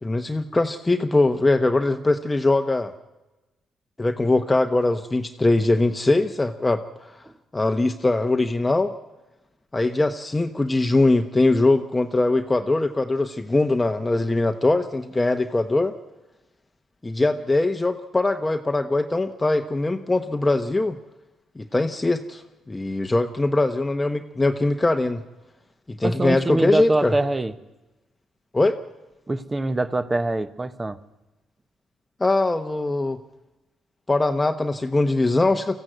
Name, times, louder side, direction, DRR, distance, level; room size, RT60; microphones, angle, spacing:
voice 1, 0.0-2.9 4.0-6.8 7.5-8.9 9.7-15.9 17.0-21.0 21.6-22.4 22.7-25.2 25.9-27.1 28.5-28.8 32.2-33.2 34.1-35.8, left 2 dB, 15° left, 6 dB, 1.0 m, -21 dB
voice 2, 26.0-27.5 29.3-31.0, right 2 dB, 20° right, 13 dB, 1.0 m, -24 dB
24.5 x 15.0 x 7.9 m, 1.1 s
cardioid pair, 90°, 0 cm